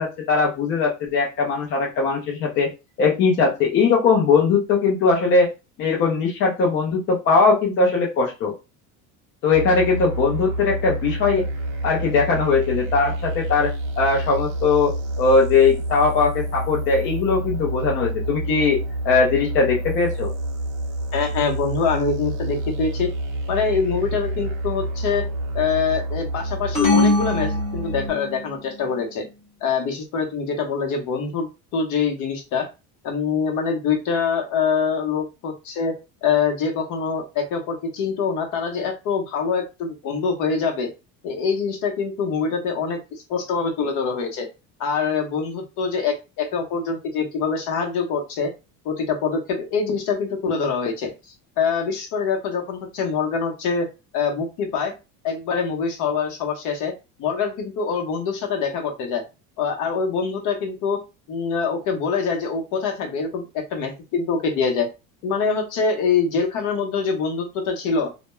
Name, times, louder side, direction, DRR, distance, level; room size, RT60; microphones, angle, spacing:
voice 1, 0.0-2.7 3.0-5.5 5.8-8.5 9.4-11.5 11.8-18.8 19.0-20.3, left 4 dB, 30° left, -2 dB, 0.4 m, -20 dB
sound 1, 9.5-28.1, right 1 dB, 50° right, 0.6 m, -28 dB
voice 2, 21.1-23.1 23.5-25.3 25.5-29.3 29.6-32.7 33.0-35.9 36.2-40.9 41.2-44.5 44.8-48.5 48.8-51.1 51.6-53.9 54.1-54.9 55.2-56.9 57.2-59.2 59.6-61.0 61.3-64.9 65.2-68.1, left 5 dB, 50° left, 3 dB, 0.7 m, -24 dB
sound 2, 26.7-28.4, left 2 dB, 15° left, 0.9 m, -21 dB
2.2 x 2.1 x 2.9 m, 0.27 s
cardioid pair, 180°, 39 cm